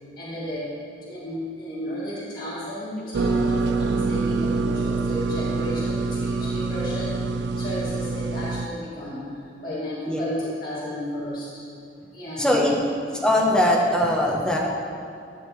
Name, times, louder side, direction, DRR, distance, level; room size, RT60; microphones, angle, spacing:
voice 1, 0.2-0.7 1.0-7.2 7.6-11.5 12.1-12.8, left 1 dB, 50° left, -10 dB, 2.2 m, -33 dB
sound 1, 3.1-8.7, right 3 dB, 70° right, 0.3 m, -25 dB
voice 2, 12.4-12.8 13.1-14.6, left 1 dB, 5° left, -3 dB, 1.0 m, -21 dB
12.5 x 6.5 x 3.2 m, 2.5 s
head